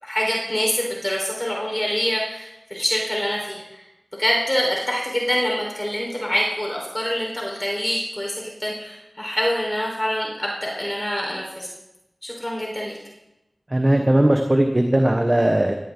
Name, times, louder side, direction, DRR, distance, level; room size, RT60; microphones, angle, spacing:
voice 1, 0.0-3.6 4.2-11.7 12.2-13.0, equal, 25° left, -2 dB, 4.7 m, -25 dB
voice 2, 13.7-15.7, right 1 dB, 30° right, 3 dB, 1.5 m, -18 dB
18.0 x 17.0 x 4.0 m, 0.93 s
wide cardioid pair, 45°, 0 cm